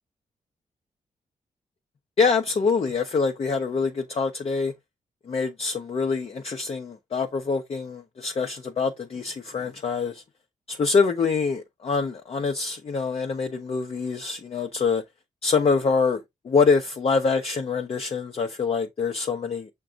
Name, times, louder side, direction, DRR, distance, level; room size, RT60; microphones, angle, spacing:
voice 1, 2.2-4.7 5.3-10.2 10.7-15.0 15.4-19.7, left 5 dB, 45° left, 0.6 m, -25 dB
5.9 x 2.2 x 3.7 m
cardioid pair, 65°, 14 cm